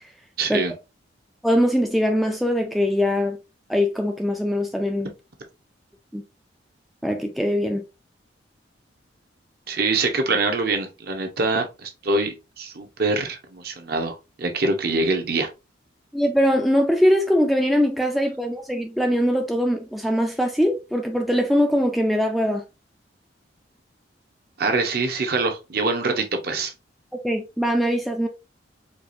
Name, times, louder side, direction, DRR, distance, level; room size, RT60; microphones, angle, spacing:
voice 1, 0.4-0.7 9.7-15.5 24.6-26.7, right 3 dB, 55° right, 0.7 m, -24 dB
voice 2, 1.4-3.4 3.7-5.1 6.1-6.2 7.0-7.8 16.1-22.6 27.2-28.3, equal, ahead, 0.3 m, -22 dB
4.6 x 2.4 x 2.5 m
head